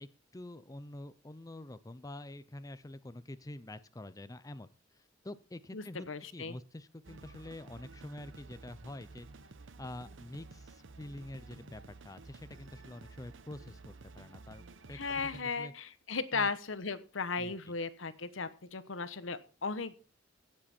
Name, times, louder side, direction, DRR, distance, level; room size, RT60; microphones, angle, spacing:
voice 1, 0.0-6.1 6.3-9.3 9.8-15.7 16.3-16.5 17.4-17.7, left 1 dB, 20° left, 13 dB, 0.6 m, -47 dB
voice 2, 5.7-6.6 14.9-20.0, left 4 dB, 85° left, 13 dB, 1.1 m, -36 dB
sound 1, 7.0-15.4, right 3 dB, 75° right, 0.8 m, -52 dB
17.0 x 7.6 x 4.4 m, 0.37 s
head